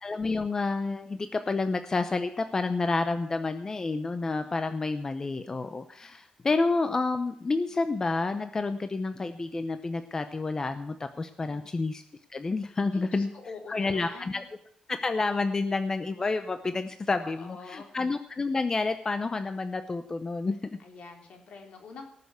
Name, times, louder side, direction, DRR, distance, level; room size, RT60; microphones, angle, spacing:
voice 1, 0.0-12.0 12.3-13.3 13.7-14.4 14.9-20.6, left 3 dB, 25° left, 9 dB, 0.7 m, -29 dB
voice 2, 12.9-14.5 17.2-17.9 20.8-22.1, left 4 dB, 65° left, 3 dB, 3.3 m, -45 dB
18.5 x 6.9 x 8.2 m, 0.72 s
cardioid pair, 130°, 2 cm